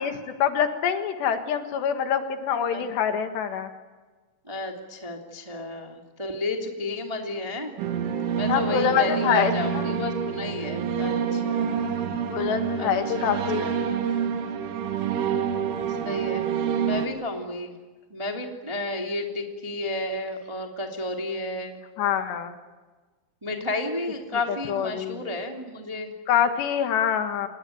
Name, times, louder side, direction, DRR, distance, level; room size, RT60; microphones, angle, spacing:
voice 1, 0.0-3.7 8.5-9.9 12.3-13.6 22.0-22.5 24.7-25.2 26.3-27.5, left 8 dB, 65° left, 7 dB, 3.3 m, -25 dB
voice 2, 4.4-7.8 8.3-11.8 12.8-13.3 13.6-13.8 15.9-16.4 16.8-17.7 18.1-21.8 23.4-26.1, left 2 dB, 15° right, 2 dB, 0.9 m, -32 dB
sound 1, 7.8-17.1, right 7 dB, 70° right, 4.4 m, -27 dB
28.0 x 20.0 x 9.3 m, 1.3 s
omnidirectional pair, 5.9 m